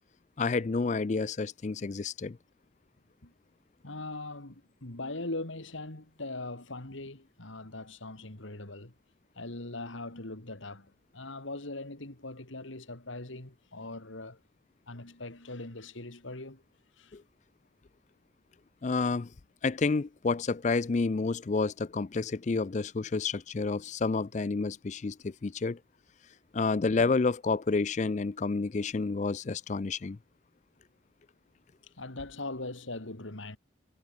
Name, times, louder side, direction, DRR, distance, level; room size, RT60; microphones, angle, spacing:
voice 1, 0.4-2.4 17.1-17.2 18.8-19.3 19.6-25.8 26.5-30.2, left 4 dB, 35° left, 0.4 m, -29 dB
voice 2, 3.8-8.9 9.4-14.4 14.9-16.6 17.0-17.2 32.0-33.6, left 2 dB, 75° left, 2.8 m, -41 dB
head